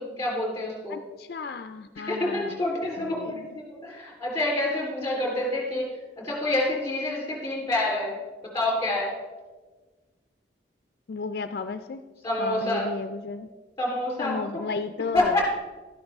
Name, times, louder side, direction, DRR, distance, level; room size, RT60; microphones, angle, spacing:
voice 1, 0.0-1.0 2.1-5.9 6.2-8.1 8.4-9.1 12.2-12.8 13.8-14.6 15.1-15.5, left 1 dB, 15° left, -2 dB, 3.5 m, -27 dB
voice 2, 0.9-2.6 3.0-3.5 11.1-12.0 12.4-13.5 14.2-15.5, left 4 dB, 60° left, 9 dB, 0.4 m, -34 dB
12.5 x 10.5 x 3.5 m, 1.3 s
head